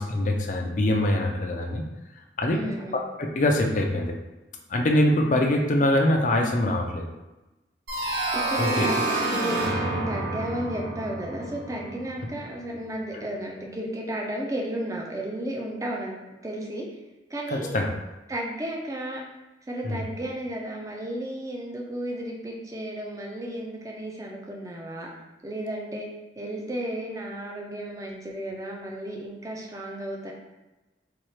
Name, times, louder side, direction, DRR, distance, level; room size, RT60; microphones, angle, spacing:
voice 1, 0.0-1.8 2.4-2.6 3.3-4.2 4.7-7.1 8.6-9.0 17.5-17.9 19.8-20.0, left 1 dB, 45° left, 2 dB, 0.5 m, -23 dB
voice 2, 2.5-3.0 8.3-16.1 16.4-16.9 17.3-17.8 18.3-19.2 19.7-25.1 25.4-26.1 26.4-30.3, right 1 dB, 20° right, -1 dB, 0.5 m, -33 dB
sound 1, 7.9-12.5, right 2 dB, 80° right, 1.1 m, -29 dB
4.3 x 2.4 x 3.1 m, 1.0 s
head